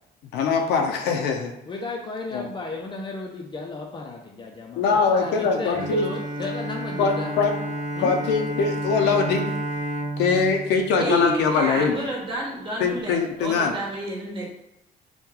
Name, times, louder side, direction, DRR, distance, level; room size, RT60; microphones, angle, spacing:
voice 1, 0.3-1.5 2.3-2.5 4.8-6.1 7.0-7.5 8.0-9.5 10.2-12.0 12.8-13.8, left 5 dB, 80° left, 4 dB, 0.5 m, -22 dB
voice 2, 1.7-7.3 8.0-8.2, left 3 dB, 30° left, 0 dB, 0.4 m, -34 dB
Bowed string instrument, 5.7-11.9, right 1 dB, 50° right, 0.6 m, -31 dB
voice 3, 11.0-14.5, right 1 dB, 30° right, -3 dB, 1.1 m, -30 dB
2.9 x 2.2 x 3.6 m, 0.88 s
cardioid pair, 110°, 17 cm